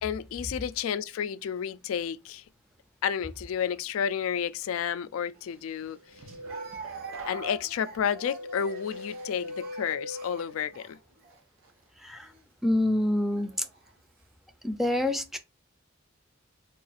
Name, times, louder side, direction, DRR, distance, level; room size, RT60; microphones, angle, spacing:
voice 1, 0.0-2.4 3.0-6.0 7.3-11.0, left 8 dB, 90° left, 0.3 m, -31 dB
Speech, 5.3-5.4 6.5-11.4 12.1-12.4 13.3-13.9, right 4 dB, 50° right, 0.7 m, -45 dB
sound 1, 5.8-10.9 11.3-11.7, left 1 dB, 90° right, 1.1 m, -41 dB
voice 2, 12.0-12.3 12.6-13.5 14.6-15.4, left 1 dB, ahead, 0.5 m, -26 dB
3.5 x 2.4 x 4.0 m
head